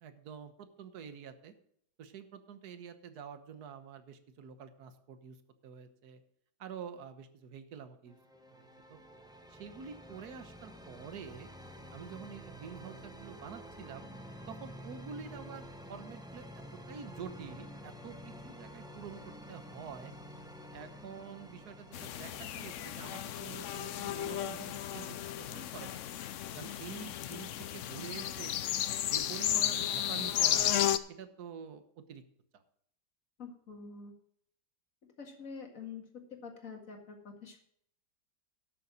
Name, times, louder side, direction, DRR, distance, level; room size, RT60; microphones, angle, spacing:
voice 1, 0.0-1.5 2.0-5.4 5.6-6.2 6.6-8.2 8.5-9.0 9.5-11.5 11.9-14.1 14.5-20.1 20.7-26.1 26.6-28.6 29.0-30.7 31.1-32.2 32.5-32.6, right 7 dB, 70° right, 10 dB, 1.5 m, -47 dB
sound 1, 8.1-25.8, equal, 5° right, 0.8 m, -50 dB
sound 2, 21.9-31.0, left 11 dB, 70° left, 0.7 m, -33 dB
voice 2, 33.4-34.1 35.2-36.0 36.4-37.6, left 5 dB, 50° left, 2 dB, 2.3 m, -46 dB
12.0 x 6.8 x 6.3 m, 0.69 s
omnidirectional pair, 1.8 m